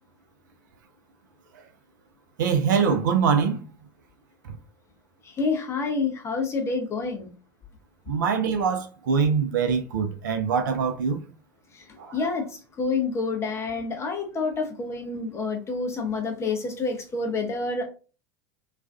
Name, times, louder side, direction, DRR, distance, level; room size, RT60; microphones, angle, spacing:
voice 1, 2.4-3.6 8.1-11.2 12.0-12.2, right 6 dB, 65° right, 0.4 m, -23 dB
voice 2, 5.4-7.3 11.7-11.8 12.1-12.5 12.8-17.8, left 4 dB, 25° left, 0.6 m, -28 dB
2.4 x 2.2 x 2.3 m
figure-of-eight pair, 80°, 11 cm